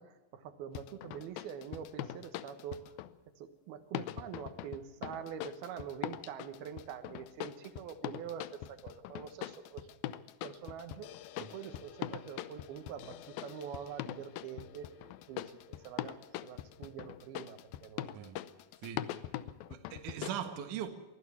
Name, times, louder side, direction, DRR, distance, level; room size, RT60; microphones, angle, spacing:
voice 1, 0.0-3.0 3.4-10.0 10.4-11.1 11.4-15.0 15.3-18.3 19.0-19.1 20.4-20.5, right 8 dB, 85° right, 3.2 m, -45 dB
sound 1, 0.7-3.2 3.9-20.3, left 13 dB, 80° left, 2.5 m, -43 dB
voice 2, 18.8-19.2 19.7-20.9, right 9 dB, 60° right, 3.0 m, -40 dB
23.5 x 16.0 x 7.2 m
omnidirectional pair, 4.3 m